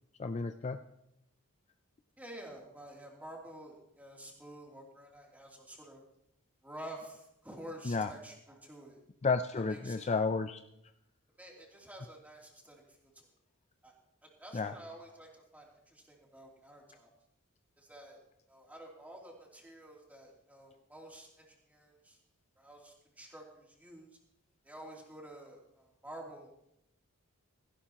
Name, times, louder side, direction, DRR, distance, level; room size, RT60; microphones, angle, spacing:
voice 1, 0.2-0.8 7.9-8.1 9.2-10.6 14.5-14.7, left 4 dB, 30° left, 9 dB, 0.4 m, -32 dB
voice 2, 2.2-6.0 6.6-9.0 9.7-10.2 11.4-12.8 13.8-13.9 14.4-17.1 17.8-18.2 18.5-22.2 22.6-24.1 24.6-26.8, right 1 dB, 5° right, -2 dB, 3.0 m, -50 dB
17.0 x 16.0 x 3.0 m, 0.80 s
head